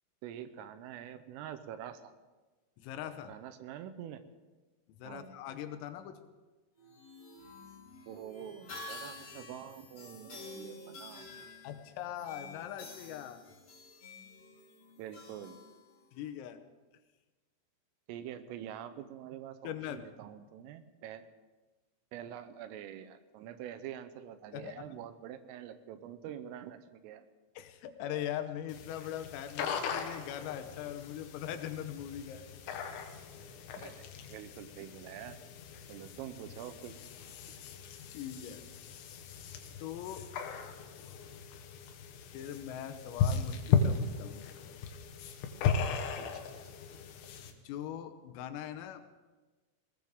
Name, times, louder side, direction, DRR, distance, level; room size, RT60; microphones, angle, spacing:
voice 1, 0.2-2.1 3.3-4.2 5.0-5.4 8.1-11.3 15.0-15.6 18.1-21.2 22.1-27.3 33.8-35.4 35.9-37.0 37.5-37.6 46.2-46.4, right 10 dB, 85° right, 10 dB, 3.4 m, -46 dB
voice 2, 2.8-3.3 5.0-6.2 11.6-13.4 16.1-16.6 19.6-20.1 24.5-25.0 27.6-32.5 35.8-36.0 38.1-38.6 39.8-40.3 42.3-44.5 47.5-49.0, left 10 dB, 90° left, 8 dB, 3.7 m, -41 dB
sound 1, 6.8-16.3, left 2 dB, 40° left, 3.1 m, -49 dB
sound 2, 28.7-47.5, left 6 dB, 70° left, 3.2 m, -37 dB
20.5 x 17.5 x 3.7 m, 1.2 s
omnidirectional pair, 5.9 m